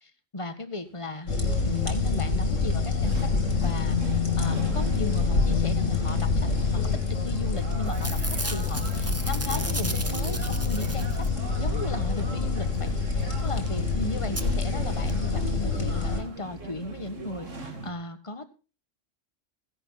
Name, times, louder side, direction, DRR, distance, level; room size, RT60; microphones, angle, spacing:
voice 1, 0.0-3.3 3.6-8.2 8.5-11.3 11.6-12.9 13.1-18.5, left 2 dB, 25° left, 9 dB, 1.5 m, -36 dB
sound 1, 0.9-17.9, right 3 dB, 80° right, 2.4 m, -40 dB
sound 2, 1.3-16.2, left 4 dB, 80° left, 3.0 m, -26 dB
Packing tape duct tape / Tearing, 7.4-7.6 7.9-11.5 13.4-13.5 13.7-13.8 14.4-14.5 15.1-15.2 15.4-15.5, right 2 dB, 15° right, 0.8 m, -35 dB
15.5 x 11.0 x 4.1 m, 0.33 s
omnidirectional pair, 1.3 m